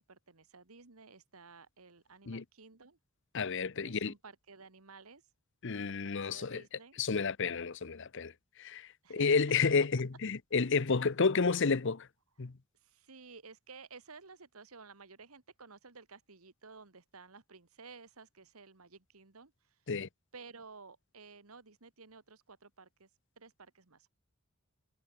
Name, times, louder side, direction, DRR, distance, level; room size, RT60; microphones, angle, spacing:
voice 1, 0.1-3.0 3.8-5.3 6.0-7.0 9.0-9.3 12.7-19.9 20.3-24.1, right 4 dB, 80° right, 1.9 m, -54 dB
voice 2, 3.3-4.1 5.6-6.6 7.0-8.3 8.6-12.1 12.4-12.5 19.9-20.1, left 4 dB, 60° left, 0.8 m, -31 dB
head